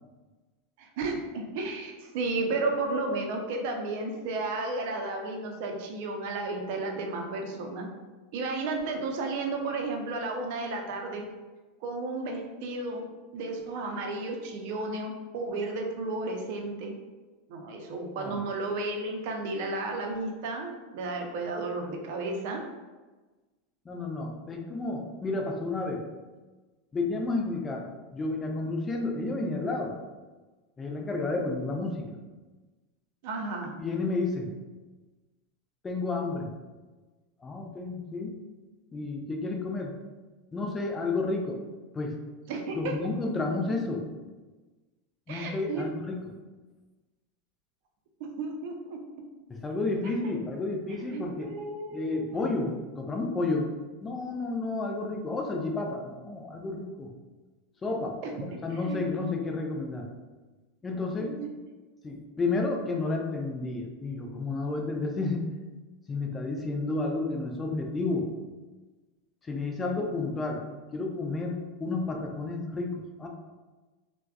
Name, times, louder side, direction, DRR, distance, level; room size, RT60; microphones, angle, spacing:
voice 1, 0.8-7.9 8.3-11.3 11.8-13.1 13.3-16.9 17.5-22.6 33.2-33.8 42.5-42.9 45.3-45.9 48.2-49.0 50.0-50.1 50.9-52.4 58.2-58.3 58.7-59.0 61.2-61.5, right 3 dB, 55° right, 2 dB, 0.5 m, -33 dB
voice 2, 23.9-26.0 26.9-29.9 30.8-32.2 33.8-34.5 35.8-36.5 37.4-38.4 38.9-40.0 40.5-41.6 41.9-42.1 42.7-44.0 45.3-46.3 49.5-51.5 51.9-53.7 54.0-57.1 57.8-60.1 60.8-61.3 62.0-65.5 66.1-68.4 69.4-70.6 70.9-73.3, left 3 dB, 20° left, 1 dB, 0.5 m, -31 dB
3.3 x 2.1 x 2.3 m, 1.2 s
figure-of-eight pair, 85°, 0 cm